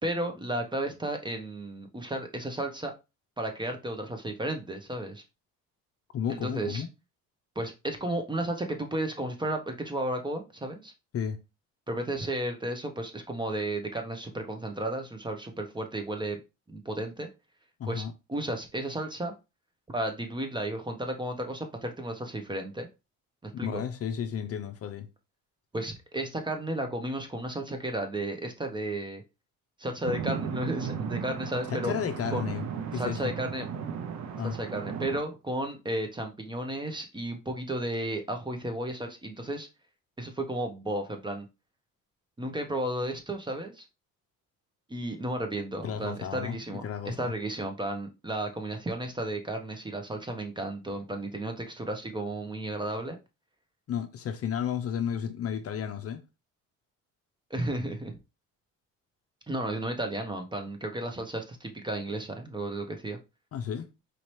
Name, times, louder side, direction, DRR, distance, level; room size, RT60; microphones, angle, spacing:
voice 1, 0.0-2.9 3.4-5.2 6.3-6.8 7.6-10.9 11.9-16.4 16.7-17.3 17.9-18.0 18.3-19.3 19.9-22.9 23.4-23.8 25.7-29.2 29.8-31.9 32.3-32.4 32.9-33.7 34.4-39.7 40.2-41.5 42.4-43.8 44.9-53.2 57.5-58.1 59.5-63.2, right 1 dB, 15° right, 0.8 m, -33 dB
voice 2, 6.1-6.9 11.1-11.4 17.8-18.1 23.6-25.1 31.7-32.6 32.9-33.3 34.4-34.5 45.8-46.6 46.8-47.3 53.9-56.2 63.5-63.9, left 8 dB, 45° left, 0.6 m, -32 dB
sound 1, 30.0-35.2, right 7 dB, 55° right, 0.7 m, -35 dB
4.2 x 2.8 x 3.1 m
cardioid pair, 105°, 33 cm